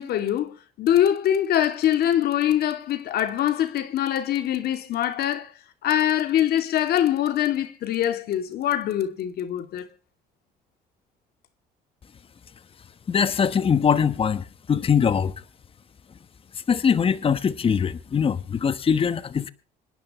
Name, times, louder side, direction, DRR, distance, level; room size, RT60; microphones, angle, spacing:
voice 1, 0.0-5.5 5.8-9.9, left 11 dB, 70° left, 2.5 m, -23 dB
voice 2, 13.1-15.3 16.7-19.5, left 7 dB, 35° left, 1.1 m, -22 dB
26.0 x 11.0 x 3.1 m
cardioid pair, 110°, 17 cm